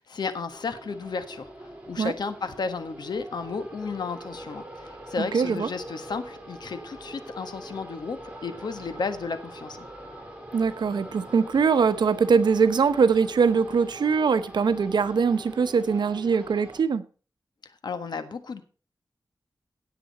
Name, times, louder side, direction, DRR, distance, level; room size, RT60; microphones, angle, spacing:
voice 1, 0.0-9.9 17.8-18.6, left 4 dB, 75° left, 1.4 m, -33 dB
sound 1, 0.5-16.8, right 1 dB, 15° right, 3.7 m, -43 dB
voice 2, 5.2-5.7 10.5-17.0, right 5 dB, 90° right, 0.9 m, -22 dB
17.0 x 7.7 x 4.1 m
wide cardioid pair, 115°, 7 cm